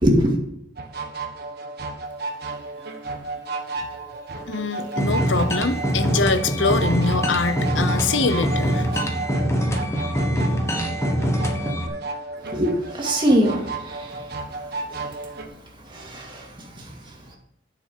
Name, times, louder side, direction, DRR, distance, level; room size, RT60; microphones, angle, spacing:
voice 1, 0.0-0.4 12.5-14.2 14.9-15.0 15.9-16.5 16.8-16.9, equal, 25° right, -1 dB, 2.4 m, -22 dB
sound 1, 0.8-15.5, right 3 dB, 55° right, 1.4 m, -33 dB
voice 2, 4.5-8.9, left 4 dB, 75° left, 11 dB, 0.8 m, -24 dB
sound 2, 5.0-11.9, equal, 15° left, 1.2 m, -24 dB
9.7 x 6.9 x 5.6 m, 0.79 s
head